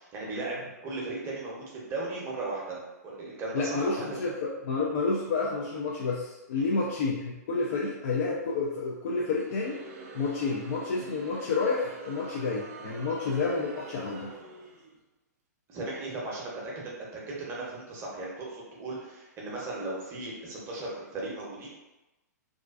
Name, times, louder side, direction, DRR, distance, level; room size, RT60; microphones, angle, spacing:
voice 1, 0.0-4.2 6.5-6.8 15.7-21.7, right 2 dB, 25° right, -4 dB, 0.7 m, -37 dB
voice 2, 3.5-9.8 10.1-14.3, left 4 dB, 50° left, -4 dB, 0.4 m, -30 dB
Crowd, 9.3-15.0, right 4 dB, 50° right, 0.4 m, -46 dB
2.4 x 2.2 x 2.3 m, 1.0 s
hypercardioid pair, 125°, 9 cm